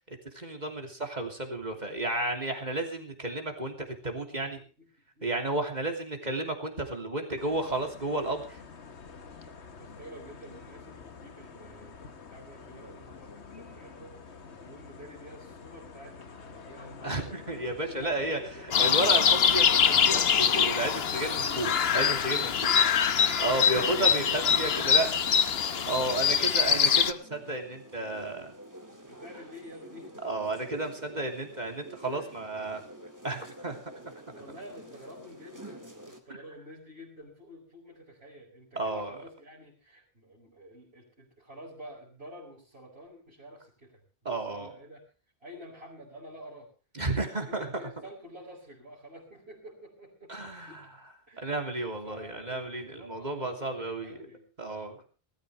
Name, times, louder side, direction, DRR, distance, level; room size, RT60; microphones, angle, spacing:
voice 1, 0.1-3.7 4.0-4.6 5.2-8.6 17.0-18.4 18.8-22.7 23.4-25.1 25.9-28.5 30.2-32.8 33.2-33.8 34.0-34.1 38.7-39.1 44.2-44.7 46.9-47.9 50.3-50.8 51.4-54.1 54.6-55.1, right 2 dB, 40° right, 4 dB, 3.2 m, -32 dB
voice 2, 4.2-5.5 6.7-6.9 8.9-9.0 9.3-19.4 21.0-21.2 22.4-23.8 25.0-25.4 25.7-25.9 29.1-32.3 34.3-45.0 45.4-46.7 47.2-50.8 51.3-51.6 52.0-54.4, equal, 65° right, -5 dB, 5.4 m, -50 dB
sound 1, 7.4-26.5, left 5 dB, 85° left, 1.7 m, -47 dB
sound 2, 18.7-27.1, left 7 dB, 70° left, 1.1 m, -24 dB
sound 3, 19.2-36.2, right 1 dB, 15° right, 2.3 m, -49 dB
20.5 x 14.0 x 3.4 m, 0.37 s
omnidirectional pair, 1.1 m